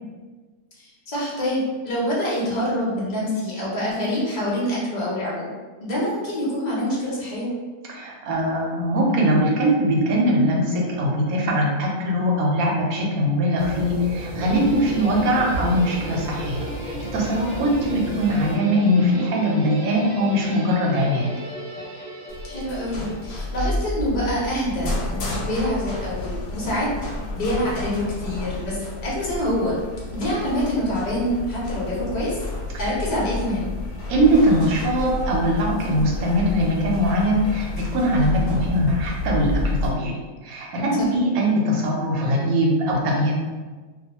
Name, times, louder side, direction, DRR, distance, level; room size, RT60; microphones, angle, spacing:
voice 1, 0.8-5.5 5.8-7.5 22.4-29.8 30.1-32.4 32.8-33.7 41.0-41.1, equal, 50° left, -6 dB, 0.5 m, -26 dB
voice 2, 7.9-21.3 34.1-40.2 40.4-43.3, equal, 70° right, -1 dB, 1.0 m, -21 dB
sound 1, 13.6-18.6, right 1 dB, 45° right, 0.9 m, -34 dB
Guitar, 14.4-23.7, equal, 15° right, 0.7 m, -36 dB
sound 2, 22.3-39.9, left 2 dB, 90° left, 1.1 m, -30 dB
2.3 x 2.3 x 2.8 m, 1.4 s
omnidirectional pair, 1.6 m